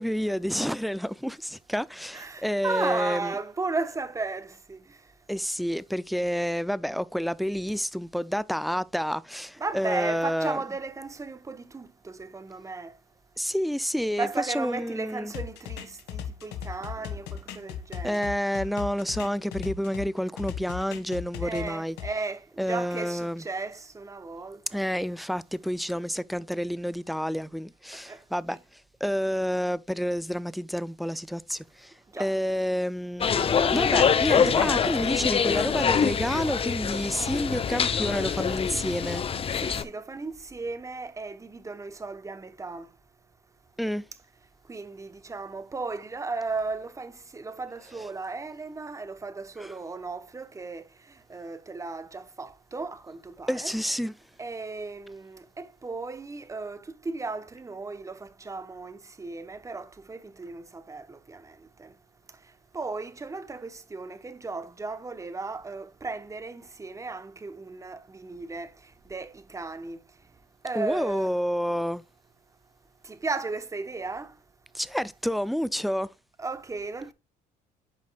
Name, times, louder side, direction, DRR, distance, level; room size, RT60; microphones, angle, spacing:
voice 1, 0.0-3.3 5.3-10.6 13.4-15.3 18.0-22.0 22.6-23.5 24.7-33.3 33.7-39.2 43.8-44.0 47.9-48.1 49.6-49.8 53.5-54.1 70.7-72.0 74.7-76.1, equal, ahead, 0.4 m, -29 dB
voice 2, 2.1-5.1 9.6-13.0 14.2-18.3 21.4-24.8 27.9-28.2 32.1-32.3 39.5-42.9 44.7-53.7 54.4-62.0 62.4-70.0 70.6-71.3 73.0-74.4 76.4-77.1, right 3 dB, 20° right, 1.1 m, -35 dB
sound 1, 15.3-20.1 20.4-22.1, left 8 dB, 80° left, 1.5 m, -37 dB
sound 2, 33.2-39.8, left 7 dB, 35° left, 0.8 m, -25 dB
11.5 x 5.3 x 2.4 m
cardioid pair, 110°, 17 cm